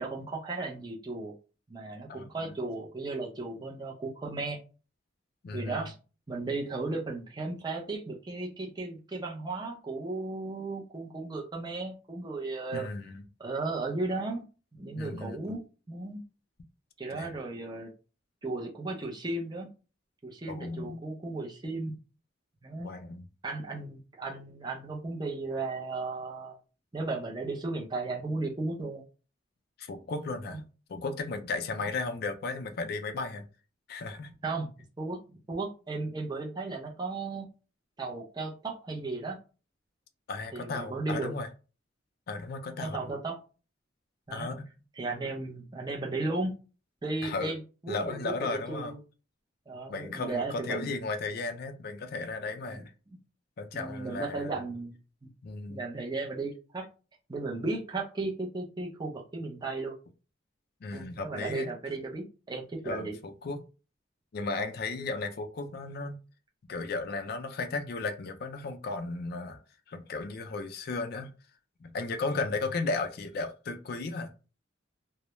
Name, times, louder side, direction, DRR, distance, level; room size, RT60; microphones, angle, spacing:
voice 1, 0.0-1.3 1.7-4.6 5.5-5.9 6.3-12.9 13.4-14.4 14.7-16.2 17.0-17.9 18.4-19.7 20.2-21.9 22.6-22.9 23.4-26.6 26.9-29.0 30.5-30.6 34.4-34.7 35.0-37.5 38.0-39.4 40.5-41.3 42.8-43.4 44.3-44.5 45.0-46.5 47.0-49.0 49.7-50.9 52.7-52.8 53.1-53.2 53.7-54.9 55.2-55.3 55.7-56.9 57.3-60.0 60.9-63.2, right 3 dB, 20° right, 0.6 m, -35 dB
voice 2, 2.1-2.5 5.4-5.9 12.7-13.2 15.0-15.4 17.1-17.3 20.5-21.0 22.8-23.3 29.8-30.6 30.9-33.5 33.9-34.3 40.3-41.5 42.3-43.0 44.3-44.6 47.2-47.5 47.9-48.9 49.9-52.9 53.6-54.5 55.4-55.8 60.8-61.7 62.8-63.6 64.3-66.2 66.7-69.6 69.9-71.3 71.8-74.3, left 3 dB, 55° left, 0.4 m, -35 dB
2.2 x 2.0 x 2.9 m
head